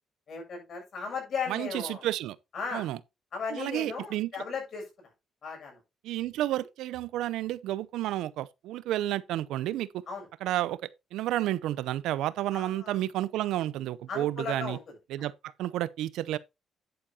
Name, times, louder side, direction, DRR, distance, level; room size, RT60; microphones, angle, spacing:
voice 1, 0.3-2.0 2.5-2.9 3.3-5.1 5.4-5.8 10.1-10.3 12.5-13.0 14.1-14.8, left 5 dB, 55° left, 6.8 m, -36 dB
voice 2, 1.5-2.4 2.7-3.0 3.5-4.4 6.0-10.0 10.4-10.8 11.1-14.8 15.1-15.3 15.6-16.4, right 14 dB, 90° right, 0.5 m, -31 dB
10.0 x 8.4 x 2.8 m
cardioid pair, 90°, 0 cm